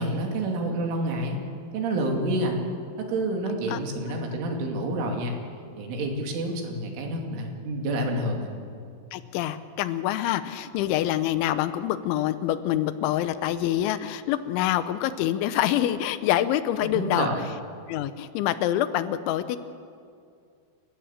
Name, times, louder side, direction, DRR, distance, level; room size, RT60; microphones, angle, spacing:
voice 1, 0.0-1.4 1.7-2.6 3.0-5.4 5.8-8.5 16.9-17.4, right 1 dB, 80° right, 2 dB, 5.0 m, -28 dB
voice 2, 9.1-17.3 17.9-19.6, left 12 dB, 80° left, 13 dB, 3.1 m, -26 dB
29.0 x 15.5 x 7.4 m, 2.4 s
omnidirectional pair, 5.5 m